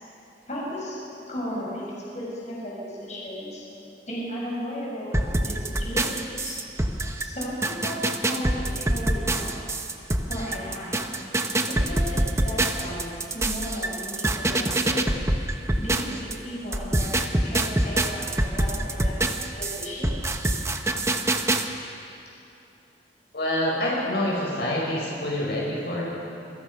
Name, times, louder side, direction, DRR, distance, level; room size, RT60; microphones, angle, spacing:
voice 1, 0.5-1.0 1.3-1.8 2.1-3.7 4.1-6.6 7.2-9.6 10.3-11.1 11.7-15.1 15.8-19.2 19.6-20.3, equal, 40° left, -5 dB, 6.4 m, -35 dB
sound 1, 5.1-16.3 16.7-21.7, right 1 dB, 15° right, 1.1 m, -25 dB
voice 2, 23.3-26.1, left 1 dB, 65° left, -4 dB, 6.7 m, -26 dB
27.0 x 22.0 x 5.8 m, 2.8 s
head